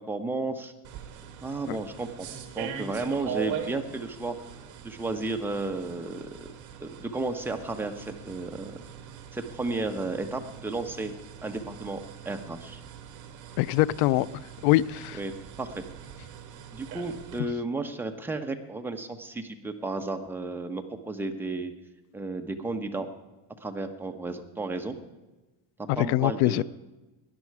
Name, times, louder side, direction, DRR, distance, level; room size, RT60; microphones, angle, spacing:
voice 1, 0.1-0.7 1.4-2.3 2.5-4.4 4.8-6.3 6.8-8.7 9.3-11.1 11.4-12.8 15.2-15.3 15.6-15.8 16.7-21.7 22.1-23.1 23.6-25.0 25.8-26.6, right 2 dB, 5° right, 4 dB, 1.1 m, -33 dB
sound 1, 0.8-17.4, right 8 dB, 45° right, 1.9 m, -42 dB
voice 2, 13.6-14.3 14.6-15.2 25.9-26.6, left 16 dB, 70° left, 21 dB, 0.5 m, -23 dB
18.5 x 10.5 x 4.8 m, 1.1 s
cardioid pair, 130°, 41 cm